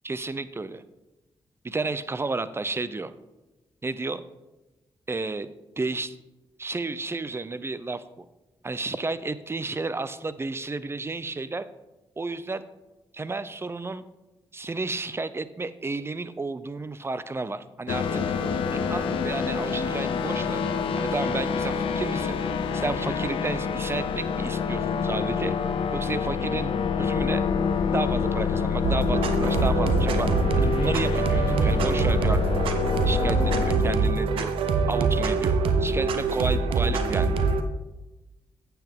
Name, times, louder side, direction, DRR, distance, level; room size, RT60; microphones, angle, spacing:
voice 1, 0.0-0.8 1.6-3.1 3.8-4.2 5.1-6.2 6.6-8.2 8.6-11.7 12.2-12.7 13.1-14.0 14.5-18.2 18.9-20.6 21.0-22.4 22.7-25.6 25.9-27.5 27.9-30.3 30.6-32.8 33.1-34.5 34.9-37.3, right 3 dB, 30° right, 14 dB, 0.6 m, -32 dB
sound 1, 17.9-33.8, left 6 dB, 85° left, 0.6 m, -27 dB
sound 2, 28.8-37.6, right 4 dB, 85° right, 0.7 m, -24 dB
9.4 x 7.0 x 3.6 m, 1.0 s
supercardioid pair, 50°, 9 cm